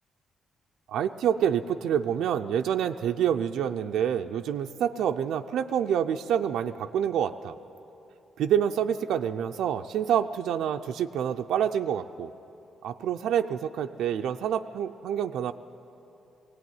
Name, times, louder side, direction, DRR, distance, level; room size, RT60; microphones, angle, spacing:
voice 1, 0.9-7.5 8.4-12.3 12.8-15.5, right 9 dB, 85° right, 5 dB, 0.5 m, -27 dB
19.0 x 17.5 x 9.5 m, 3.0 s
cardioid pair, 150°, 0 cm